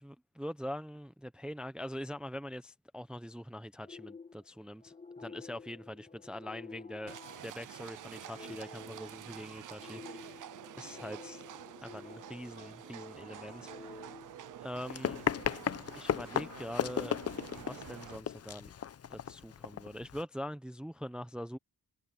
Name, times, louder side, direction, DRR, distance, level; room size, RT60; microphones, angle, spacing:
voice 1, 0.0-7.1 7.4-10.4 10.8-11.4 11.8-14.1 14.6-15.2 16.0-17.2 17.6-18.7 19.1-21.6, equal, ahead, 0.6 m, -43 dB
sound 1, 3.8-15.1, left 4 dB, 20° left, 2.8 m, -51 dB
Livestock farm animals working animals, 7.1-18.2, right 12 dB, 55° right, 0.6 m, -49 dB
Run, 14.7-20.2, left 8 dB, 40° left, 0.7 m, -36 dB
wide cardioid pair, 140°, 39 cm